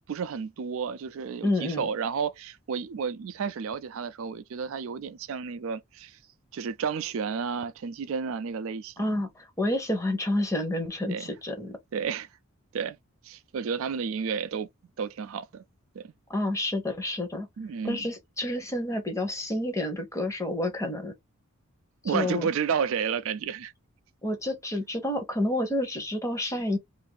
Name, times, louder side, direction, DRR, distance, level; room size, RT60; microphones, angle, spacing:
voice 1, 0.1-6.2 6.5-9.2 11.1-11.3 11.9-12.3 12.7-13.0 13.2-14.7 15.0-15.6 15.9-16.1 17.6-18.1 22.0-23.7, right 6 dB, 65° right, 0.4 m, -31 dB
voice 2, 1.4-1.9 9.0-11.8 16.3-17.5 17.8-21.1 22.0-22.5 24.2-26.8, left 1 dB, 15° left, 0.8 m, -29 dB
2.6 x 2.5 x 3.8 m
head